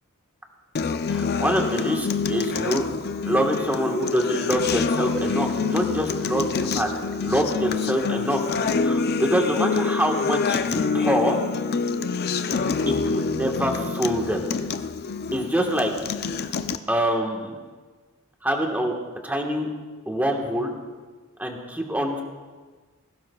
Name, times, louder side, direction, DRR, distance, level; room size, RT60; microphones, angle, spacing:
Acoustic guitar, 0.7-16.8, left 5 dB, 45° left, 0.5 m, -26 dB
voice 1, 1.1-2.9 3.3-6.9 7.2-8.5 8.8-11.4 12.9-14.4 15.3-15.9 16.9-17.6 18.4-19.0 19.2-19.7 20.1-20.7 21.4-22.2, equal, 10° right, 1 dB, 1.4 m, -25 dB
20.5 x 16.5 x 2.3 m, 1.4 s
head